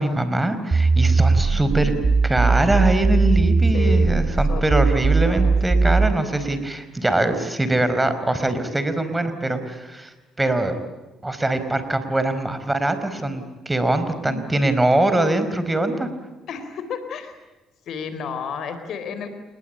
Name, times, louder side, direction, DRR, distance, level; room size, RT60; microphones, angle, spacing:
voice 1, 0.0-1.9 2.2-10.7 11.2-16.1, right 1 dB, 15° right, 10 dB, 4.7 m, -22 dB
sound 1, 0.7-6.2, right 4 dB, 30° right, 2.5 m, -19 dB
voice 2, 1.5-2.1 3.7-4.1 4.5-5.5 14.2-14.4 16.5-17.4 17.9-19.3, left 5 dB, 60° left, 9 dB, 4.0 m, -32 dB
29.5 x 21.0 x 8.9 m, 1.2 s
hypercardioid pair, 50°, 0 cm